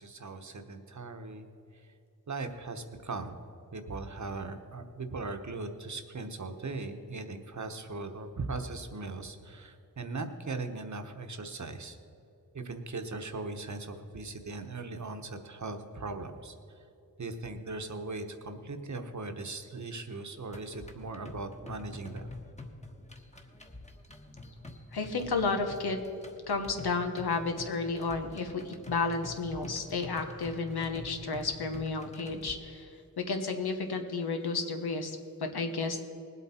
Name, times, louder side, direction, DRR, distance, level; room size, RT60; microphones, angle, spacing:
voice 1, 0.0-2.0 2.3-3.4 3.7-12.0 12.5-16.9 17.2-22.3, right 3 dB, 50° right, 7 dB, 1.1 m, -39 dB
sound 1, 20.5-32.5, left 2 dB, 20° left, 1.3 m, -47 dB
voice 2, 24.9-26.0 26.5-36.0, left 4 dB, 90° left, 5 dB, 1.2 m, -32 dB
19.5 x 8.2 x 4.3 m, 2.8 s
wide cardioid pair, 70°, 37 cm